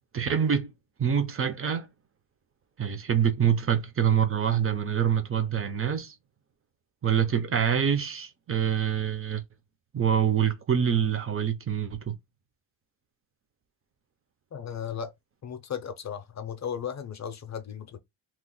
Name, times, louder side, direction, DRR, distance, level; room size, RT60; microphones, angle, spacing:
voice 1, 0.1-0.7 1.0-1.9 2.8-6.1 7.0-9.4 9.9-12.1, right 8 dB, 30° right, 0.4 m, -25 dB
voice 2, 14.5-15.1 15.4-18.0, left 8 dB, 40° left, 0.5 m, -35 dB
2.9 x 2.0 x 3.7 m
wide cardioid pair, 165°, 47 cm